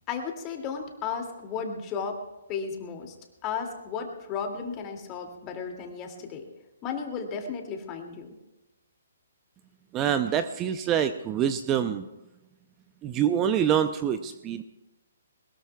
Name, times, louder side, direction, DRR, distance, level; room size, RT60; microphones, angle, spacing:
voice 1, 0.1-2.2 2.5-3.1 3.4-6.5 6.8-8.3, left 6 dB, 25° left, 3 dB, 2.5 m, -34 dB
voice 2, 9.9-12.1 13.0-14.6, right 9 dB, 20° right, 10 dB, 0.6 m, -26 dB
21.5 x 20.0 x 2.3 m, 1.0 s
hypercardioid pair, 140°, 0 cm